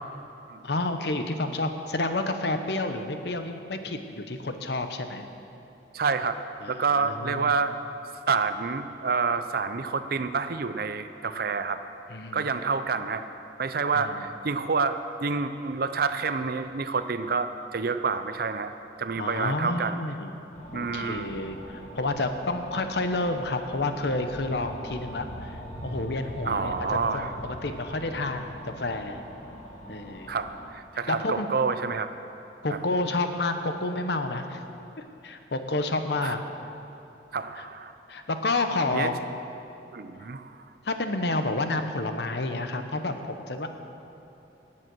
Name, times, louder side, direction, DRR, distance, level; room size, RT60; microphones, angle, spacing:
voice 1, 0.6-5.3 6.6-7.5 12.1-12.6 13.9-14.3 19.2-20.3 20.7-29.2 29.9-30.3 31.1-31.5 32.6-34.6 35.2-36.4 37.5-37.7 38.1-39.3 40.8-43.7, left 2 dB, 65° left, 7 dB, 0.9 m, -30 dB
voice 2, 5.9-7.8 8.3-11.8 12.3-13.2 13.6-18.7 19.0-20.0 20.7-21.4 26.5-27.3 30.3-32.1 36.2-36.3 37.3-37.9 38.9-39.1 39.9-40.6, right 4 dB, 55° right, 10 dB, 0.6 m, -28 dB
sound 1, 20.5-30.7, equal, 40° left, 1.9 m, -42 dB
18.0 x 7.6 x 6.2 m, 2.9 s
head